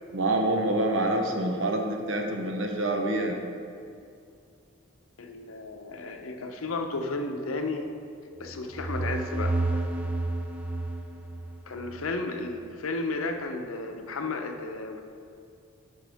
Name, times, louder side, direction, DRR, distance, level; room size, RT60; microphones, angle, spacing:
voice 1, 0.1-3.5, right 1 dB, 65° right, 3 dB, 0.8 m, -26 dB
voice 2, 5.2-7.9 8.4-9.8 11.7-15.0, left 3 dB, 80° left, 5 dB, 0.7 m, -33 dB
sound 1, 8.4-12.1, right 2 dB, 5° right, 0.4 m, -30 dB
11.5 x 5.4 x 3.5 m, 2.4 s
head